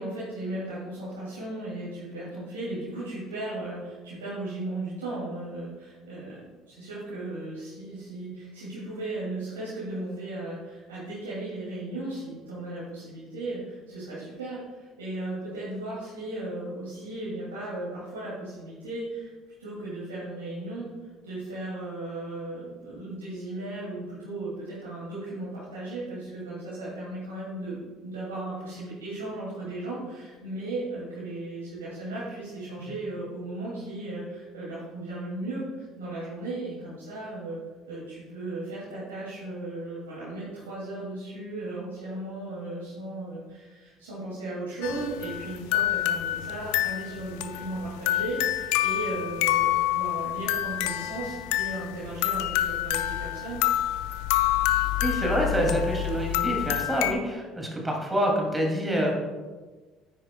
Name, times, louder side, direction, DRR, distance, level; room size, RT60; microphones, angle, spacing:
voice 1, 0.0-19.3 19.6-20.9 21.2-37.6 37.9-53.6, right 2 dB, 85° right, -9 dB, 2.3 m, -36 dB
sound 1, 44.8-57.1, left 14 dB, 75° left, 0.3 m, -27 dB
voice 2, 55.0-59.1, equal, 15° right, 0 dB, 2.4 m, -26 dB
9.4 x 9.1 x 2.2 m, 1.3 s
hypercardioid pair, 60°, 0 cm